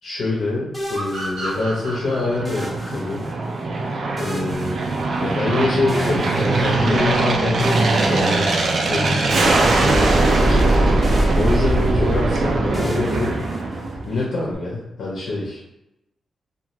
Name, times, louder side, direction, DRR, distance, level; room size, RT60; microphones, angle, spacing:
voice 1, 0.0-3.3 4.2-4.9 5.2-11.0 11.3-13.4 13.7-15.6, left 2 dB, 70° left, -4 dB, 0.7 m, -25 dB
sound 1, 0.7-1.9 2.5-3.6 4.2-5.5 5.9-7.1 7.6-9.0 9.3-10.7 11.0-12.2 12.7-14.1, equal, 5° right, 0.6 m, -35 dB
sound 2, 0.9-4.3, right 1 dB, 85° right, 0.9 m, -33 dB
Aircraft, 1.5-14.3, right 2 dB, 55° right, 0.4 m, -20 dB
2.5 x 2.3 x 3.0 m, 0.89 s
wide cardioid pair, 145°, 0 cm